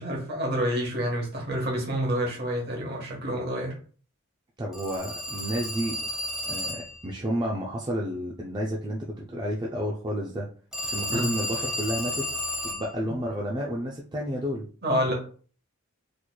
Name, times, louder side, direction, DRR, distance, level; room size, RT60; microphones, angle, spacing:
voice 1, 0.0-3.7 11.0-11.3 13.0-13.1 14.8-15.1, equal, 45° right, 1.2 m, -28 dB
voice 2, 4.6-6.0 6.5-10.5 10.8-12.3 12.6-14.7 15.0-15.1, equal, 20° right, 0.3 m, -31 dB
Telephone, 4.7-7.0 10.7-12.9, left 1 dB, 5° right, 0.8 m, -32 dB
4.2 x 3.0 x 2.2 m
head